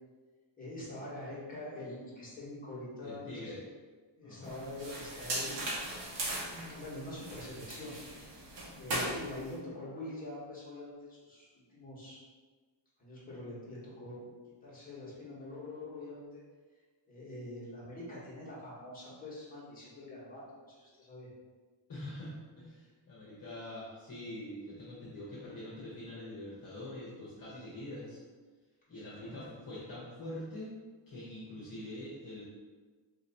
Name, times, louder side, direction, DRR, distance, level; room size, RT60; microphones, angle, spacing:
voice 1, 0.6-3.6 4.2-5.6 6.5-7.9 8.7-12.2 13.0-14.2 14.6-16.4 17.1-21.3 29.2-29.5, left 1 dB, 20° left, -9 dB, 1.5 m, -44 dB
voice 2, 3.0-3.6 4.2-4.5 8.7-8.8 21.9-28.2 28.9-30.7 31.1-32.4, left 1 dB, 45° left, -7 dB, 1.0 m, -44 dB
sound 1, 4.5-9.5, right 1 dB, 65° right, 1.0 m, -39 dB
3.4 x 3.0 x 4.1 m, 1.4 s
wide cardioid pair, 165°, 48 cm